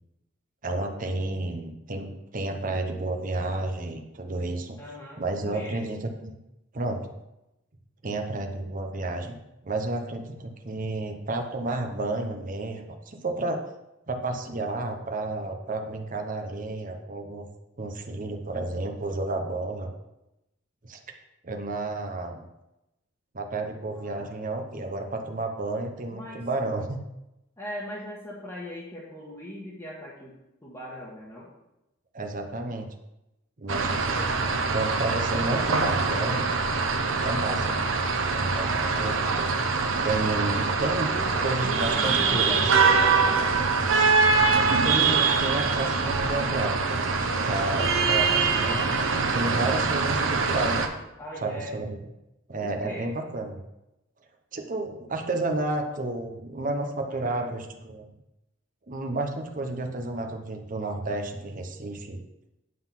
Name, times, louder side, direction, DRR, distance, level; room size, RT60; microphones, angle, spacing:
voice 1, 0.6-4.8 5.2-6.4 6.7-7.1 8.0-9.4 9.6-13.6 14.1-17.4 17.8-19.9 20.8-21.0 21.4-22.4 23.3-27.0 32.1-32.9 33.6-34.4 34.7-36.5 37.2-37.8 38.3-38.7 39.0-39.5 40.0-41.1 41.4-42.7 44.8-50.8 51.4-52.0 52.5-53.5 54.5-58.1 58.9-62.2, right 2 dB, 45° right, 4 dB, 0.8 m, -31 dB
voice 2, 4.8-5.8 23.9-24.3 26.1-26.5 27.6-30.3 30.6-31.5 38.6-39.1 41.1-43.4 51.2-51.7 52.6-53.1 57.0-57.5, left 1 dB, 15° left, -7 dB, 1.5 m, -39 dB
sound 1, 33.7-50.9, right 4 dB, 80° right, 0.8 m, -24 dB
9.4 x 3.9 x 5.8 m, 0.92 s
head